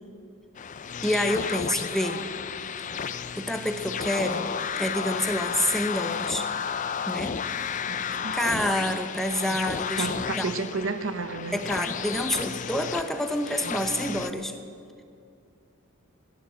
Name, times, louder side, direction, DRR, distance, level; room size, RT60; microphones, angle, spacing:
sound 1, 0.5-14.3, left 7 dB, 35° left, 0.4 m, -32 dB
voice 1, 1.0-2.3 3.4-4.5 4.8-6.5 7.1-7.4 8.3-10.5 11.5-14.5, left 1 dB, ahead, 6 dB, 0.8 m, -28 dB
voice 2, 7.9-8.4 10.0-11.6, right 3 dB, 60° right, 11 dB, 0.8 m, -32 dB
15.5 x 11.0 x 7.8 m, 2.3 s
head